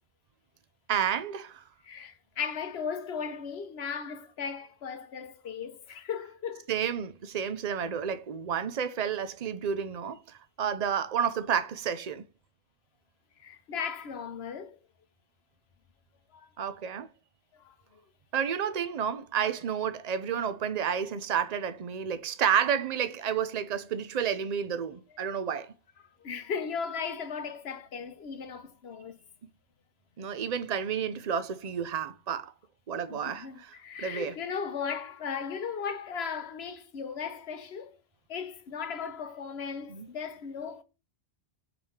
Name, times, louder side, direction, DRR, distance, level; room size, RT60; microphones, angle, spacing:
voice 1, 0.9-1.6 6.7-12.2 16.6-17.1 18.3-25.7 29.4-29.5 30.2-32.5 32.9-34.4 39.9-40.1, right 8 dB, 45° right, 0.7 m, -31 dB
voice 2, 1.8-6.7 7.8-8.0 13.4-14.8 16.3-16.5 17.5-18.0 26.2-29.2 33.1-38.0 38.3-40.8, left 6 dB, 75° left, 1.1 m, -37 dB
5.2 x 4.7 x 5.7 m
omnidirectional pair, 1.1 m